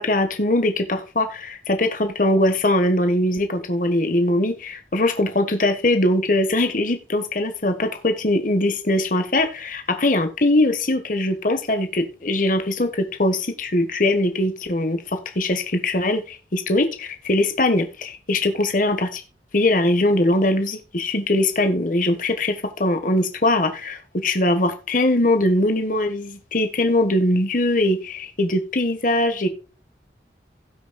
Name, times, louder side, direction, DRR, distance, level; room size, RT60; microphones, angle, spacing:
voice 1, 0.0-19.2 19.5-29.5, left 1 dB, 45° left, 7 dB, 1.3 m, -21 dB
17.5 x 6.2 x 2.3 m, 0.34 s
head